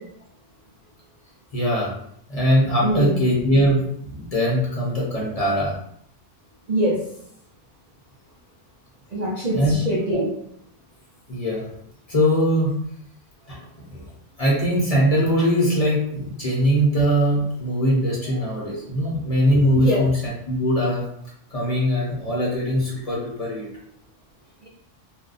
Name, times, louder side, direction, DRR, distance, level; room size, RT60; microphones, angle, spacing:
voice 1, 1.5-1.9 2.3-5.7 9.5-9.8 11.3-11.7 12.1-12.7 13.5-14.1 14.4-21.0 21.5-23.7, equal, 35° left, -5 dB, 0.8 m, -21 dB
voice 2, 2.8-3.1 6.7-7.0 9.1-10.3 19.8-20.0 24.6-24.7, right 1 dB, 45° right, -6 dB, 0.6 m, -23 dB
2.5 x 2.2 x 3.9 m, 0.71 s
omnidirectional pair, 1.2 m